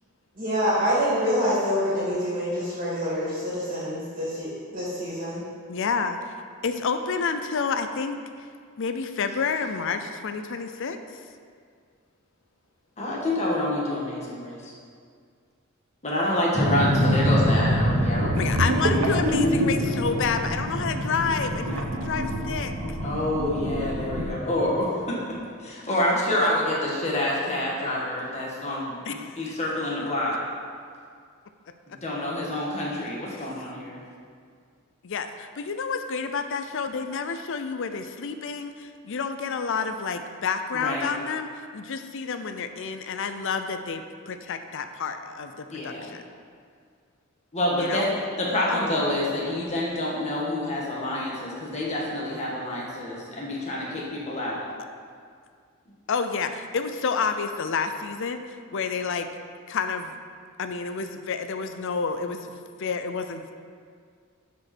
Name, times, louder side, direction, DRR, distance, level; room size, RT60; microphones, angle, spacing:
voice 1, 0.3-5.4, equal, 40° right, -9 dB, 2.6 m, -26 dB
voice 2, 5.7-6.4 6.6-8.2 8.8-11.0 18.4-23.0 29.0-29.5 33.4-33.5 35.0-46.2 47.8-48.2 48.7-49.0 56.1-59.3 59.7-60.2 60.6-62.5 62.8-63.5, left 5 dB, 60° left, 8 dB, 0.5 m, -29 dB
voice 3, 13.0-14.7 16.0-18.3 23.0-30.4 31.9-34.0 40.7-41.1 45.7-46.1 47.5-48.1 48.4-54.6, left 1 dB, 30° left, -5 dB, 1.6 m, -27 dB
sound 1, 16.5-24.8, equal, 25° right, 2.3 m, -27 dB
sound 2, 18.2-24.3, right 1 dB, 85° right, 0.9 m, -28 dB
12.0 x 5.2 x 4.3 m, 2.1 s
head